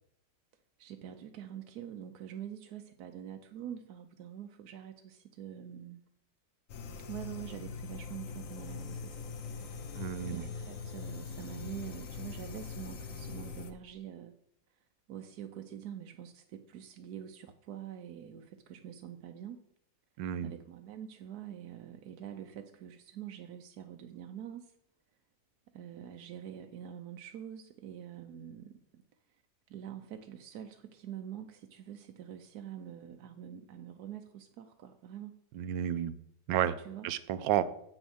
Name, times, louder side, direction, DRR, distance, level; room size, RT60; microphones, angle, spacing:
voice 1, 0.8-6.0 7.0-9.2 9.5-9.8 10.2-14.3 15.1-19.6 20.4-24.7 25.7-29.0 29.7-35.4 36.8-37.1, right 10 dB, 65° right, 5 dB, 1.1 m, -45 dB
sound 1, 6.7-13.7, left 5 dB, 55° left, 1.0 m, -42 dB
voice 2, 10.0-10.5 20.2-20.5 35.5-36.1 36.5-36.8 37.0-37.6, right 10 dB, 85° right, 14 dB, 1.3 m, -31 dB
8.0 x 6.3 x 6.1 m, 0.72 s
omnidirectional pair, 2.0 m